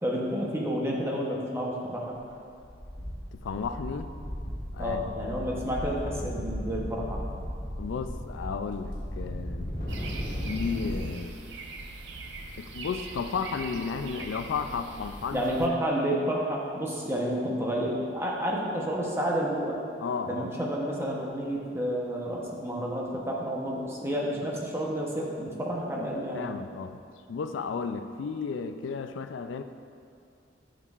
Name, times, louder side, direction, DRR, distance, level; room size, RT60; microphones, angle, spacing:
voice 1, 0.0-2.1 4.8-7.2 15.3-19.8 20.3-26.5, equal, 15° right, -3 dB, 0.8 m, -30 dB
sound 1, 2.3-2.4 2.6-11.1, equal, 50° left, 1.7 m, -36 dB
voice 2, 3.3-4.1 4.7-5.5 7.8-9.7 10.5-11.4 12.6-15.4 20.0-20.5 26.0-27.0 27.3-29.6, left 5 dB, 85° left, 9 dB, 0.3 m, -33 dB
sound 2, 9.9-15.7, right 3 dB, 70° right, 0.6 m, -41 dB
10.0 x 6.3 x 2.4 m, 2.4 s
head